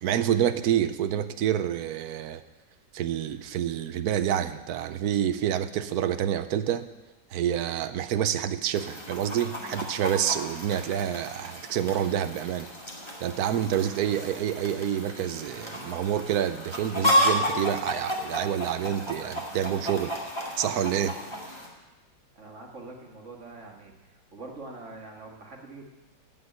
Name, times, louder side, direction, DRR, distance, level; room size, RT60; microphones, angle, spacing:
voice 1, 0.0-2.4 2.9-6.9 7.3-12.7 13.2-20.2 20.6-21.1, right 10 dB, 70° right, 12 dB, 1.1 m, -28 dB
Chicken rooster, 8.7-21.7, equal, 15° left, 2.0 m, -32 dB
voice 2, 22.4-23.9 24.3-25.9, right 3 dB, 45° right, 1 dB, 2.0 m, -44 dB
16.0 x 5.4 x 9.3 m, 1.1 s
omnidirectional pair, 1.9 m